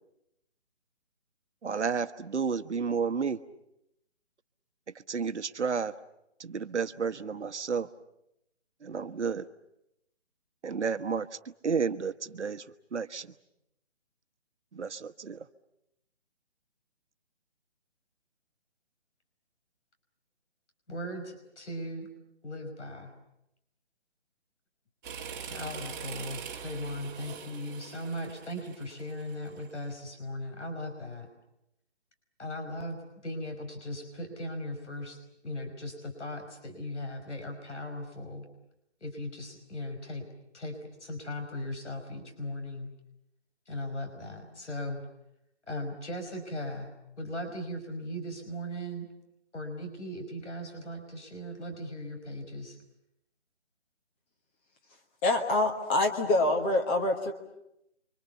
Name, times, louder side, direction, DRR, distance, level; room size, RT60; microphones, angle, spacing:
voice 1, 1.6-3.4 5.1-5.9 6.4-7.9 8.8-9.5 10.6-11.3 11.6-12.6 12.9-13.3 14.7-15.5, right 5 dB, 75° right, 10 dB, 1.3 m, -31 dB
voice 2, 20.9-22.1 22.4-23.1 25.5-31.3 32.4-38.5 39.0-40.2 40.5-42.9 43.7-45.0 45.7-49.1 49.5-52.8, left 1 dB, 75° left, 6 dB, 5.4 m, -38 dB
sound 1, 25.0-29.9, right 7 dB, 15° right, 1.8 m, -43 dB
voice 3, 55.2-57.3, left 2 dB, 10° left, 4 dB, 1.2 m, -25 dB
29.0 x 25.0 x 7.0 m, 0.82 s
hypercardioid pair, 165°, 35 cm